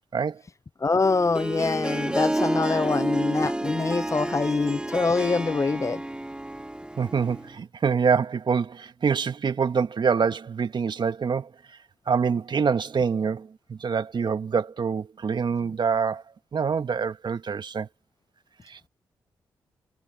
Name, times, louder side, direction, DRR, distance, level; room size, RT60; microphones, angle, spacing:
voice 1, 0.8-6.0, left 4 dB, 35° left, 0.6 m, -24 dB
Harp, 1.0-7.5, right 1 dB, 10° right, 1.0 m, -30 dB
voice 2, 7.0-11.5 12.1-16.2 16.5-17.9 18.7-18.8, right 6 dB, 55° right, 1.7 m, -25 dB
hypercardioid pair, 40°, 9 cm